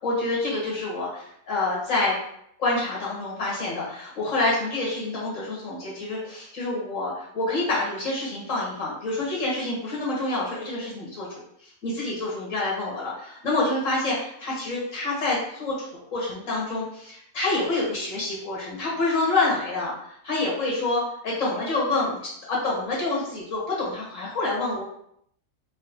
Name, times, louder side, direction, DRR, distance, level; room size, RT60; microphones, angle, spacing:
voice 1, 0.0-2.2 2.6-15.8 16.1-24.8, left 2 dB, 60° left, -5 dB, 1.6 m, -27 dB
3.9 x 2.1 x 2.8 m, 0.72 s
omnidirectional pair, 1.6 m